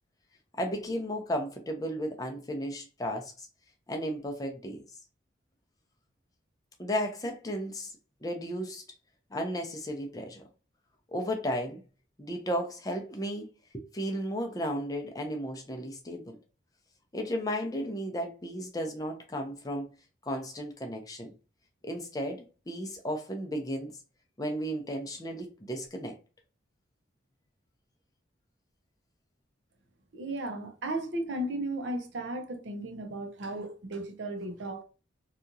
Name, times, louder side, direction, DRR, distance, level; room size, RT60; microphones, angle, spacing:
voice 1, 0.6-3.5 3.9-4.8 6.8-8.8 9.3-10.4 11.1-11.8 12.2-13.5 13.7-16.4 17.1-19.9 20.2-21.3 21.8-23.9 24.4-26.2, equal, 20° left, 0.5 m, -34 dB
voice 2, 30.1-34.8, right 1 dB, 70° right, 0.6 m, -35 dB
2.8 x 2.3 x 2.6 m
head